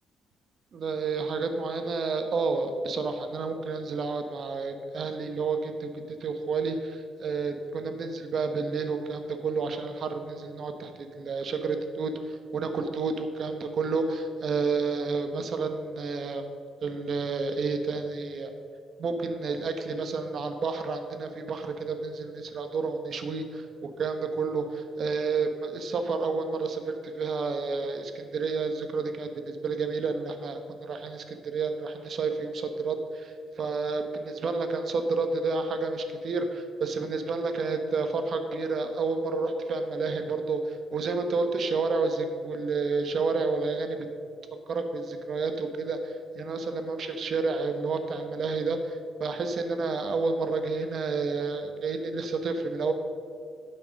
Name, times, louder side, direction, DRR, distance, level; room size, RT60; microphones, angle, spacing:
voice 1, 0.7-16.4 16.8-18.5 19.0-44.1 44.7-52.9, right 4 dB, 55° right, 6 dB, 1.0 m, -30 dB
9.2 x 5.8 x 6.5 m, 2.3 s
cardioid pair, 90°, 0 cm